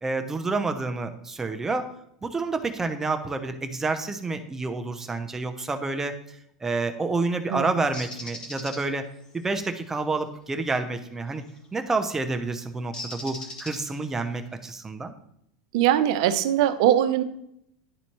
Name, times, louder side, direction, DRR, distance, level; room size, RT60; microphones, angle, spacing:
voice 1, 0.0-1.9 2.2-6.2 6.6-9.0 9.3-11.4 11.7-15.1, right 3 dB, 15° right, 6 dB, 0.7 m, -29 dB
Bird, 7.9-8.8 11.4-11.7 12.9-14.1, left 2 dB, 25° left, 1.5 m, -38 dB
voice 2, 15.7-17.2, right 11 dB, 65° right, 11 dB, 0.6 m, -21 dB
11.0 x 4.1 x 3.0 m, 0.74 s
supercardioid pair, 115°, 3 cm